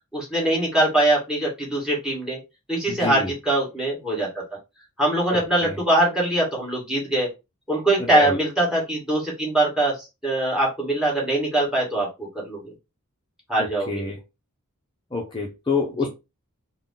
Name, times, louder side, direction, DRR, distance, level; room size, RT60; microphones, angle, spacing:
voice 1, 0.1-2.4 2.7-4.3 5.0-7.3 7.7-9.9 10.2-12.7 13.5-14.0, right 1 dB, 5° right, -3 dB, 1.8 m, -22 dB
voice 2, 2.9-3.3 5.3-5.8 8.1-8.4 13.6-14.2 15.1-16.1, left 4 dB, 20° left, 0 dB, 0.6 m, -27 dB
3.7 x 2.2 x 3.7 m, 0.25 s
head